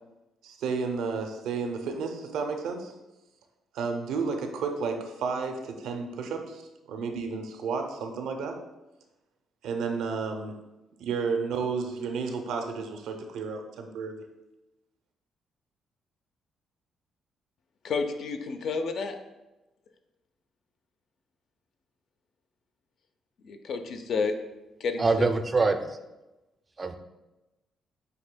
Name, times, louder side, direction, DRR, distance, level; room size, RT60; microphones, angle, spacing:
voice 1, 0.4-2.9 3.7-6.6 6.9-8.6 9.6-10.6 11.0-14.2, right 5 dB, 85° right, 5 dB, 0.5 m, -32 dB
voice 2, 17.8-19.2 23.4-24.3 24.8-25.1, left 4 dB, 65° left, 7 dB, 0.4 m, -30 dB
voice 3, 25.0-26.0 26.8-27.0, right 3 dB, 30° right, 7 dB, 0.4 m, -24 dB
7.6 x 2.7 x 2.2 m, 1.0 s
cardioid pair, 90°, 0 cm